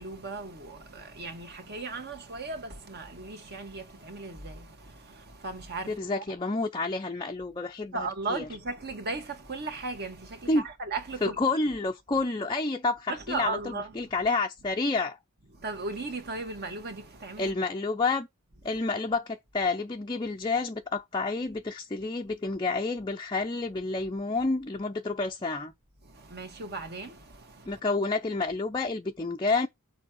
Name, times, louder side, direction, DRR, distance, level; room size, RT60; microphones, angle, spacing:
voice 1, 0.0-6.0 7.9-11.4 13.1-13.9 15.6-17.5 26.0-27.8, right 3 dB, 50° right, 1.9 m, -37 dB
voice 2, 5.9-8.5 10.5-10.7 11.2-15.2 17.4-18.3 18.6-25.7 27.7-29.7, left 3 dB, 20° left, 0.6 m, -29 dB
6.9 x 4.7 x 6.3 m
head